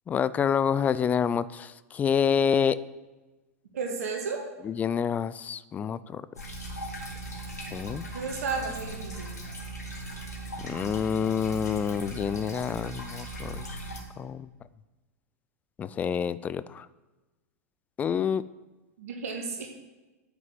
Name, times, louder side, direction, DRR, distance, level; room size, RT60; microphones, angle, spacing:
voice 1, 0.1-2.8 4.6-6.2 7.7-8.0 10.6-13.8 14.2-14.5 15.8-16.9 18.0-18.4, left 7 dB, 20° left, 16 dB, 0.4 m, -27 dB
voice 2, 3.7-4.4 8.1-9.3 19.0-19.7, right 4 dB, 60° right, 1 dB, 1.8 m, -33 dB
sound 1, 6.4-14.0, right 2 dB, 80° left, 2.6 m, -39 dB
9.1 x 6.1 x 7.7 m, 1.2 s
figure-of-eight pair, 95°, 9 cm